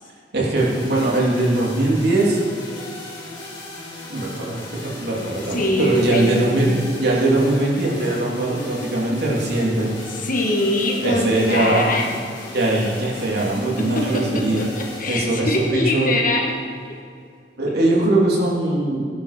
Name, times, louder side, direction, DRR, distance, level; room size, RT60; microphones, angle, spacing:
voice 1, 0.3-2.4 4.1-4.6 5.0-6.7 7.0-9.9 11.0-11.8 12.5-14.6 15.1-16.2 17.6-19.0, right 2 dB, 60° right, -4 dB, 3.2 m, -20 dB
sound 1, 0.6-16.6, left 2 dB, 25° left, 4.1 m, -38 dB
voice 2, 5.5-6.8 10.1-12.2 13.8-16.5, left 1 dB, 45° left, 0 dB, 1.9 m, -23 dB
18.5 x 10.5 x 4.5 m, 2.3 s
head